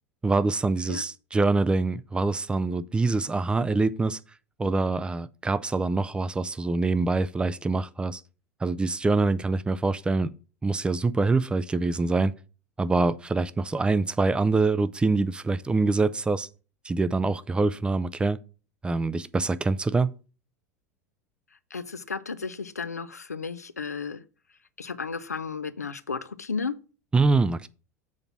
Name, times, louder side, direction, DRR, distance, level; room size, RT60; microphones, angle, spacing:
voice 1, 0.2-4.2 4.6-8.2 8.6-10.3 10.6-12.3 12.8-16.5 16.8-18.4 18.8-20.2 27.1-27.7, right 3 dB, 10° right, 0.4 m, -25 dB
voice 2, 21.7-24.2 24.8-26.7, left 5 dB, 90° left, 0.5 m, -33 dB
7.2 x 3.9 x 5.9 m
figure-of-eight pair, 85°, 8 cm